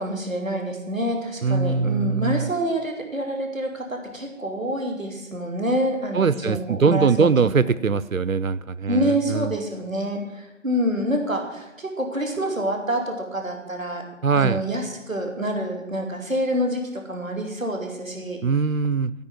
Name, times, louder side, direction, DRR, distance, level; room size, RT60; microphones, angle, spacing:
voice 1, 0.0-7.3 8.9-14.0 14.3-18.4, equal, 5° right, -13 dB, 1.9 m, -27 dB
voice 2, 1.4-2.5 6.1-9.5 14.2-14.6 18.4-19.1, right 5 dB, 85° right, 15 dB, 0.6 m, -21 dB
14.0 x 5.4 x 9.1 m, 1.0 s
figure-of-eight pair, 165°, 40 cm